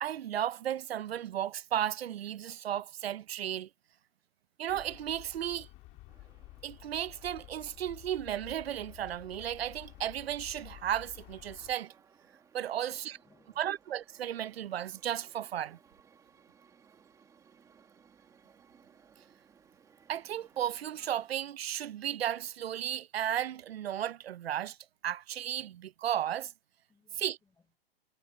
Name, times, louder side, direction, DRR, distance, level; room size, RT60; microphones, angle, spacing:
voice 1, 0.0-3.7 4.6-5.7 6.6-11.9 12.5-13.0 13.6-15.8 20.1-24.8 25.0-26.5 27.2-27.4, right 11 dB, 75° right, 0.7 m, -34 dB
sound 1, 4.7-11.7, left 20 dB, 25° left, 2.2 m, -52 dB
sound 2, 6.1-21.3, right 6 dB, 10° right, 2.1 m, -63 dB
voice 2, 12.7-13.7 26.9-27.8, left 5 dB, 10° left, 7.1 m, -68 dB
hypercardioid pair, 150°, 31 cm